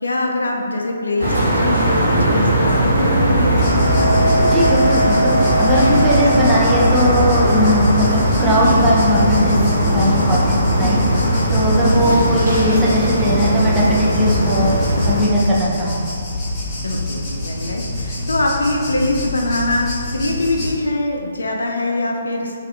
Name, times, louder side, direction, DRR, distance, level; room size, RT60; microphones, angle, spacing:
voice 1, 0.0-4.1 6.2-6.3 11.9-12.2 16.8-22.5, left 2 dB, 75° left, 0 dB, 0.3 m, -23 dB
sound 1, 1.2-15.2, right 1 dB, 85° right, 1.2 m, -18 dB
sound 2, 3.5-20.7, left 1 dB, 15° left, 1.2 m, -26 dB
Hammer, 3.6-9.8, right 1 dB, 55° right, 1.0 m, -23 dB
voice 2, 4.4-16.2, equal, 5° right, -7 dB, 0.6 m, -19 dB
3.2 x 2.4 x 2.6 m, 2.3 s
figure-of-eight pair, 135°, 0 cm